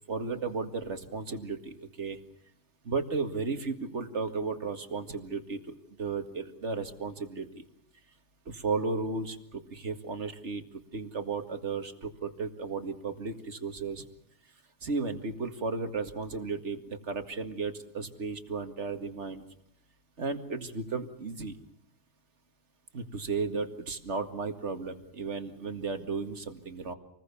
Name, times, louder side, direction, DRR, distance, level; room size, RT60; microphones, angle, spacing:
voice 1, 0.1-2.2 2.8-7.6 8.5-10.6 10.9-14.0 14.8-19.4 20.2-21.5 22.9-26.9, right 4 dB, 55° right, 8 dB, 2.2 m, -34 dB
28.0 x 20.5 x 7.1 m, 0.73 s
omnidirectional pair, 1.5 m